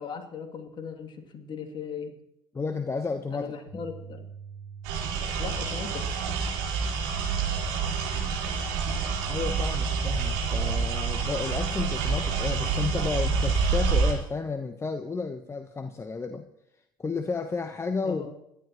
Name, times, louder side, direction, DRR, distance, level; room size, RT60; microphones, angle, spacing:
voice 1, 0.0-2.1 3.3-4.3 5.4-6.0 18.0-18.3, left 6 dB, 40° left, 4 dB, 2.7 m, -38 dB
voice 2, 2.5-3.8 9.3-16.5 17.0-18.4, left 4 dB, 25° left, 8 dB, 1.1 m, -32 dB
sound 1, 3.7-13.7, right 6 dB, 90° right, 2.5 m, -43 dB
sound 2, 4.8-14.1, right 5 dB, 70° right, 4.1 m, -27 dB
26.5 x 12.0 x 3.1 m, 0.81 s
hypercardioid pair, 65°, 12 cm